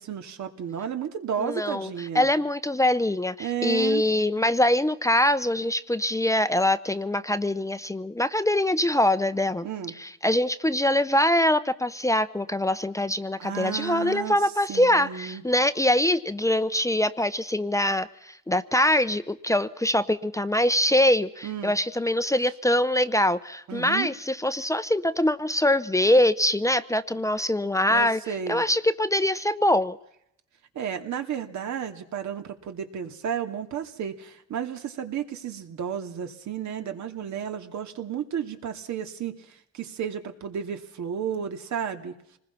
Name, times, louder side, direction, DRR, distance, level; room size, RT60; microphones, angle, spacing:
voice 1, 0.0-2.3 3.4-4.0 9.6-9.9 13.4-14.4 14.7-15.4 21.4-21.7 23.7-24.1 27.9-28.6 30.7-42.1, right 8 dB, 70° right, 6 dB, 2.6 m, -32 dB
voice 2, 1.4-9.6 10.0-28.2 28.5-30.0, left 1 dB, 10° left, 13 dB, 0.9 m, -23 dB
26.5 x 20.5 x 5.9 m, 0.77 s
cardioid pair, 90°, 30 cm